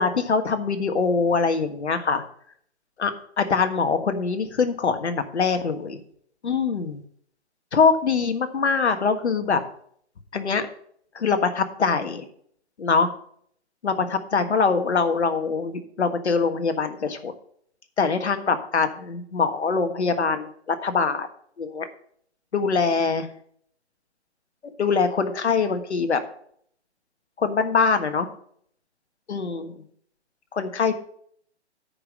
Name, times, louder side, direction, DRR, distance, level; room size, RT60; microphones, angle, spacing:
voice 1, 0.0-2.2 3.0-6.0 6.4-7.0 7.7-9.6 10.3-10.7 11.1-12.3 12.8-13.1 13.8-17.3 18.0-21.3 21.6-21.9 22.5-23.3 24.8-26.2 27.4-28.3 29.3-29.8 30.5-31.0, left 5 dB, 75° left, 8 dB, 1.5 m, -23 dB
9.6 x 5.0 x 6.4 m, 0.63 s
hypercardioid pair, 155°, 34 cm